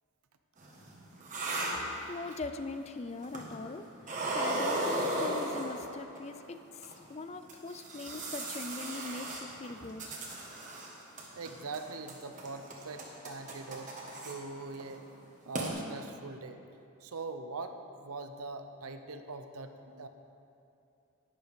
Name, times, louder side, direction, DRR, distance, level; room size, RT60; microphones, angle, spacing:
sound 1, 0.6-2.5 3.2-3.7 4.0-6.2 6.8-6.9 7.5-10.9 11.2-11.8 12.1-14.3 14.7-14.9 15.2-15.3 15.5-15.7, right 1 dB, 35° right, 1.4 m, -36 dB
voice 1, 2.1-3.9 4.3-6.8 7.1-10.0, left 3 dB, 30° left, 9 dB, 0.4 m, -41 dB
voice 2, 11.4-14.0 14.2-15.1 15.5-16.6 17.0-20.1, right 3 dB, 80° right, 8 dB, 0.7 m, -42 dB
11.5 x 10.5 x 3.5 m, 2.7 s
head